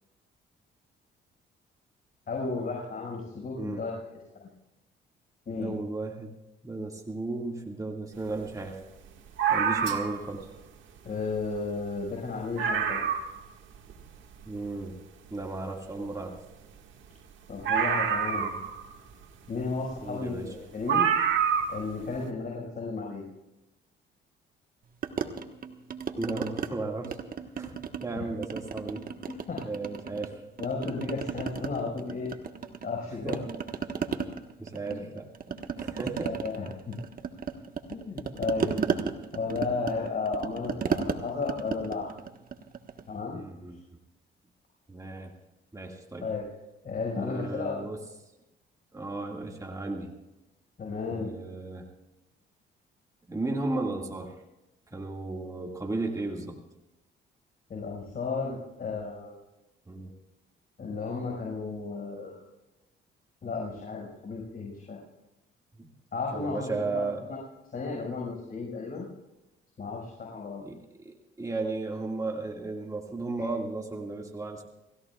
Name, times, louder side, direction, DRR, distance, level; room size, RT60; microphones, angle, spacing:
voice 1, 2.3-4.0 5.5-5.8 11.0-13.1 17.5-18.5 19.5-21.1 21.7-23.2 28.2-28.3 29.3-29.6 30.6-32.3 32.8-33.4 34.9-35.0 36.2-37.0 37.9-38.8 39.3-42.1 43.1-43.4 46.2-46.5 46.8-47.9 50.8-51.3 57.7-59.4 60.8-62.4 63.4-65.0 66.1-67.4 67.7-69.1 69.8-70.6 73.4-73.5, left 4 dB, 50° left, -2 dB, 5.7 m, -34 dB
voice 2, 5.6-6.3 6.6-8.8 9.5-10.5 14.4-15.0 15.3-16.4 18.3-18.6 20.0-20.4 26.2-27.2 27.6-27.7 28.0-29.0 29.6-30.4 33.2-33.4 34.6-36.3 43.3-43.8 44.9-45.3 45.7-46.3 47.1-48.0 48.9-50.1 51.1-51.9 53.3-54.4 54.9-56.6 59.9-60.1 65.8-65.9 66.3-67.2 70.6-74.6, right 3 dB, 15° right, 0 dB, 2.1 m, -35 dB
sound 1, 9.4-10.3 11.4-11.5 11.8-11.9 12.3-12.4 12.6-13.4 13.9-14.0 17.7-18.9 20.1-20.2 20.9-21.8 22.1-22.2, right 7 dB, 75° right, 1.9 m, -26 dB
sound 2, 25.0-26.7 27.0-28.1 28.4-30.3 30.6-33.0 33.3-43.1, right 6 dB, 45° right, 1.4 m, -34 dB
29.5 x 16.5 x 2.4 m, 0.98 s
cardioid pair, 90°, 20 cm